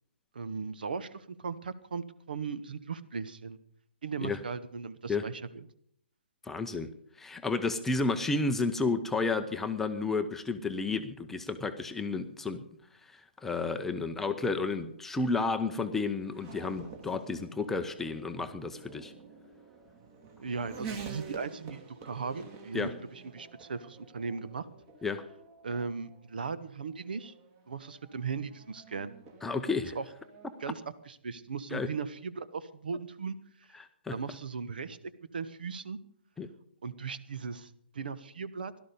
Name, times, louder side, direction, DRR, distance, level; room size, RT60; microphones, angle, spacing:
voice 1, 0.3-3.6 4.0-5.7 20.4-24.6 25.6-27.3 27.7-29.1 29.9-30.0 30.6-33.4 34.1-35.0 35.3-36.0 36.8-38.7, right 5 dB, 55° right, 14 dB, 1.1 m, -37 dB
voice 2, 6.4-6.9 7.2-12.6 13.1-19.1 22.7-22.9 25.0-25.2 29.4-30.0 31.7-31.9 33.8-34.2 36.4-36.5, left 3 dB, 5° left, 7 dB, 0.7 m, -31 dB
Race car auto racing / Accelerating revving vroom, 14.9-30.7, right 5 dB, 25° right, 2.0 m, -49 dB
17.0 x 12.0 x 5.3 m, 0.68 s
figure-of-eight pair, 130°, 6 cm